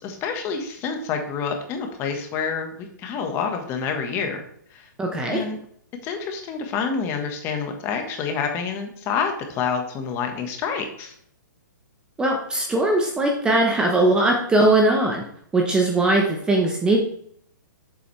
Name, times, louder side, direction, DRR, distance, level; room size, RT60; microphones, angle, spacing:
voice 1, 0.0-4.4 4.7-4.9 5.3-5.6 6.0-11.1, left 6 dB, 25° left, 4 dB, 1.2 m, -28 dB
voice 2, 5.0-5.4 12.2-15.2 15.5-17.0, right 2 dB, 10° right, 0 dB, 0.8 m, -20 dB
7.9 x 7.3 x 3.2 m, 0.66 s
hypercardioid pair, 155°, 11 cm